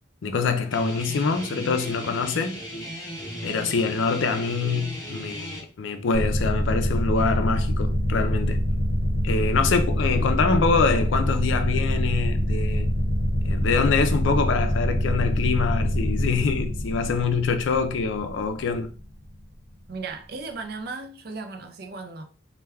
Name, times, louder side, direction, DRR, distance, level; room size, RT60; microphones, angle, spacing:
voice 1, 0.2-2.6 3.4-8.6 9.2-12.9 13.4-18.9, left 4 dB, 75° left, 0.4 m, -25 dB
Guitar, 0.7-5.6, equal, 20° left, 0.9 m, -36 dB
sound 1, 6.1-19.4, equal, 85° right, 1.0 m, -25 dB
voice 2, 19.9-22.2, right 3 dB, 55° right, 0.4 m, -36 dB
3.3 x 2.2 x 2.2 m
head